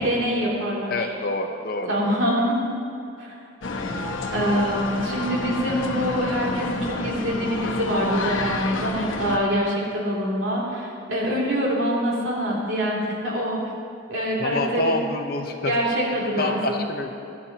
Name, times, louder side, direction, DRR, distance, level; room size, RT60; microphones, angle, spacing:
voice 1, 0.0-1.1 1.9-2.6 3.2-3.3 4.3-13.6 14.1-15.1 15.6-16.8, equal, 85° right, -4 dB, 3.0 m, -25 dB
voice 2, 0.9-2.1 14.4-15.7 16.4-17.1, left 2 dB, 50° left, 4 dB, 1.0 m, -27 dB
sound 1, 3.6-9.4, left 3 dB, 85° left, 1.0 m, -29 dB
18.0 x 11.0 x 2.9 m, 2.7 s
head